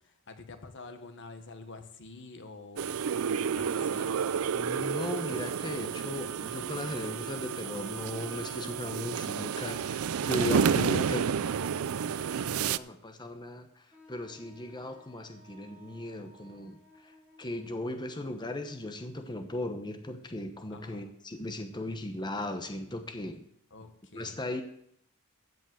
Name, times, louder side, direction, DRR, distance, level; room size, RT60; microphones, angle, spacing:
voice 1, 0.0-3.0 3.5-4.3 20.7-21.1 23.7-24.4, left 3 dB, 55° left, 8 dB, 1.3 m, -47 dB
sound 1, 2.8-12.8, right 7 dB, 70° right, 0.4 m, -31 dB
voice 2, 4.5-23.4 24.1-24.6, left 1 dB, 20° left, 6 dB, 0.9 m, -37 dB
Wind instrument woodwind instrument, 13.9-19.7, left 1 dB, 5° right, 2.5 m, -59 dB
15.5 x 5.3 x 7.7 m, 0.73 s
head